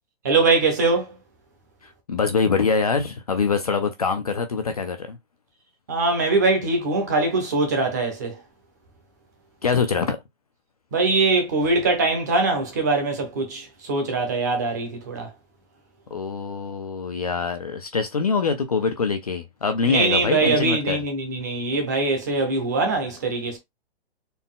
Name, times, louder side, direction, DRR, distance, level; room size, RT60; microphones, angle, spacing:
voice 1, 0.2-1.1 5.9-8.4 10.9-15.3 19.9-23.6, right 3 dB, 15° right, 0.7 m, -22 dB
voice 2, 1.8-5.2 9.6-10.2 16.1-21.0, left 5 dB, 40° left, 0.4 m, -24 dB
4.1 x 2.2 x 3.7 m
hypercardioid pair, 175°, 32 cm